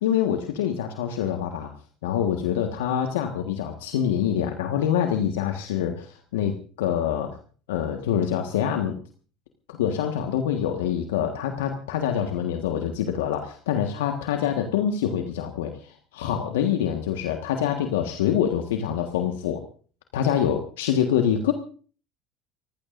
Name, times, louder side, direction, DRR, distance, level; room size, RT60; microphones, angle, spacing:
voice 1, 0.0-1.7 2.0-7.4 7.7-9.0 9.7-19.6 20.1-21.5, left 9 dB, 80° left, 4 dB, 1.5 m, -25 dB
30.0 x 15.5 x 2.6 m, 0.41 s
hypercardioid pair, 70°, 0 cm